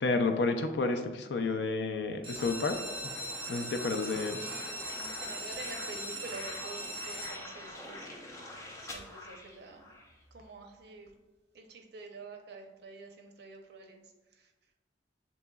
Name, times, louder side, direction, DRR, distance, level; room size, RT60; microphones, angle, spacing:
voice 1, 0.0-3.1 3.5-4.4, left 3 dB, 70° left, 6 dB, 0.4 m, -31 dB
sound 1, 2.1-7.8 8.5-9.0 9.4-9.5 9.7-9.8 10.2-10.3, equal, 30° right, 1.1 m, -40 dB
sound 2, 2.4-10.2, left 1 dB, 20° left, 0.6 m, -46 dB
voice 2, 4.0-8.1 8.8-9.9 10.3-11.1 11.5-14.0, right 3 dB, 65° right, 3 dB, 0.6 m, -47 dB
7.0 x 2.9 x 2.2 m, 1.2 s
head